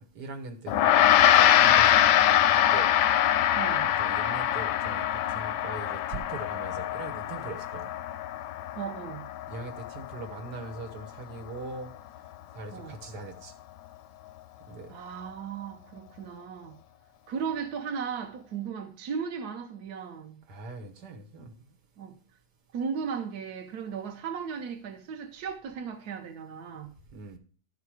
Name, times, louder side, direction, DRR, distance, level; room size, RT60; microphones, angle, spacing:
voice 1, 0.0-2.9 3.9-7.9 9.5-11.9 12.5-13.5 14.7-14.9 20.5-21.6 27.1-27.4, right 3 dB, 90° right, 1.8 m, -41 dB
Gong, 0.7-10.2, left 11 dB, 85° left, 1.2 m, -23 dB
voice 2, 3.5-4.0 8.7-9.3 12.7-12.9 14.9-16.8 17.3-20.4 22.0-22.2 22.7-26.9, right 6 dB, 70° right, 1.3 m, -36 dB
11.5 x 4.8 x 4.8 m
omnidirectional pair, 1.7 m